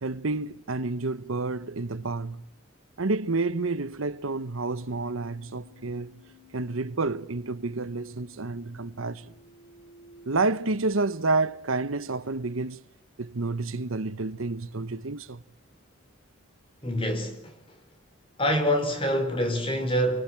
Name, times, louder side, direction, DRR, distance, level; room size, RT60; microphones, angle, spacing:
voice 1, 0.0-2.4 3.0-6.2 6.5-9.3 10.3-12.8 13.2-15.4, right 3 dB, 90° right, 1.0 m, -29 dB
Keyboard (musical), 4.4-10.4, left 3 dB, 80° left, 8.0 m, -56 dB
voice 2, 16.8-17.6 18.4-20.2, equal, 25° left, 4.7 m, -26 dB
28.5 x 25.0 x 7.6 m
head